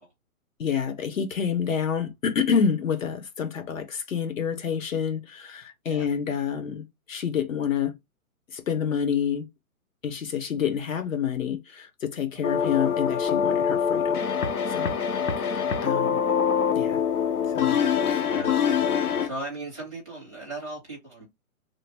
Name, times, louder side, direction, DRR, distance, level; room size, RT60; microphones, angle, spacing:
voice 1, 0.6-7.9 8.5-9.5 10.0-14.2 14.7-14.9 15.4-16.2 16.7-17.0 17.4-17.8 18.1-18.3, left 7 dB, 60° left, 0.9 m, -28 dB
sound 1, 12.4-19.3, left 7 dB, 90° left, 0.9 m, -24 dB
voice 2, 18.2-18.6 19.2-21.2, right 2 dB, 10° left, 0.7 m, -37 dB
3.1 x 2.1 x 3.4 m
hypercardioid pair, 180°, 44 cm